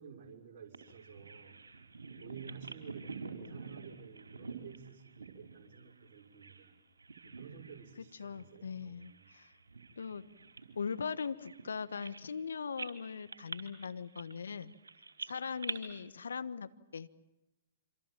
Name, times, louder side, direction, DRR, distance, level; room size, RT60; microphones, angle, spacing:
voice 1, 0.0-1.6 2.2-6.8 7.2-9.2, right 7 dB, 45° right, 1 dB, 6.1 m, -52 dB
Bird vocalization bird call bird song, 0.7-6.7 7.0-7.9 8.2-8.4 9.0-12.4 12.8-15.7, right 4 dB, 80° right, 4.0 m, -47 dB
voice 2, 8.2-9.5 10.0-10.2 10.7-14.7 15.2-17.1, left 6 dB, 70° left, 13 dB, 1.3 m, -40 dB
26.5 x 26.5 x 7.5 m, 0.99 s
figure-of-eight pair, 115°, 0 cm